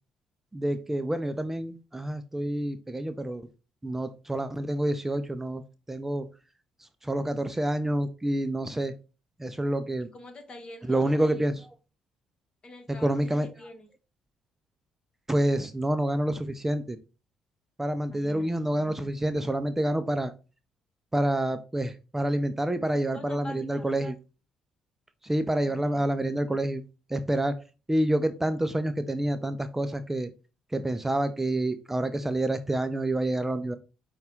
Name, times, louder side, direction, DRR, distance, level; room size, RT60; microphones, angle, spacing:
voice 1, 0.5-3.5 3.8-5.6 5.9-6.3 6.8-8.9 9.4-10.1 10.9-11.8 12.9-13.5 15.3-17.0 17.8-20.3 21.1-24.2 25.2-26.8 27.1-27.6 27.9-30.3 30.7-33.8, right 1 dB, 15° right, 0.4 m, -28 dB
voice 2, 10.1-11.2 12.6-13.9 18.1-18.5 23.1-23.9 25.7-25.8, left 1 dB, 40° left, 1.3 m, -45 dB
5.5 x 2.3 x 3.6 m
hypercardioid pair, 50°, 2 cm